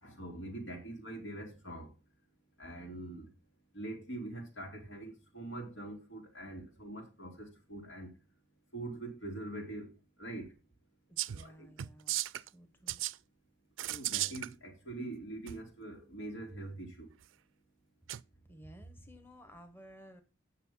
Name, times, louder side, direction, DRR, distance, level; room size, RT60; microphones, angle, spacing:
voice 1, 0.0-1.9 2.6-3.3 3.7-8.1 8.7-9.9 10.2-10.5 11.3-11.7 13.8-17.1, right 2 dB, 90° left, 3.5 m, -43 dB
voice 2, 11.1-13.0 18.4-20.2, equal, 10° left, 1.1 m, -55 dB
sound 1, 11.2-11.5 11.8-12.5 12.9-13.2 13.8-14.5 15.5-15.6 18.1-18.2, right 15 dB, 85° right, 0.4 m, -35 dB
8.9 x 6.5 x 5.6 m
head